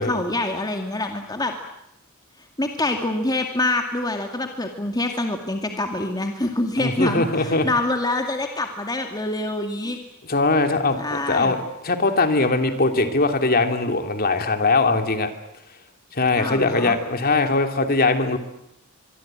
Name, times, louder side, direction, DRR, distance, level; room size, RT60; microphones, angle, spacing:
voice 1, 0.0-1.5 2.6-10.0 11.0-11.6 16.4-17.0, left 2 dB, 20° left, 4 dB, 2.3 m, -26 dB
voice 2, 6.8-7.7 10.3-11.6 11.8-15.3 16.1-18.4, left 3 dB, 45° left, 6 dB, 2.9 m, -21 dB
25.0 x 24.0 x 9.0 m, 0.81 s
head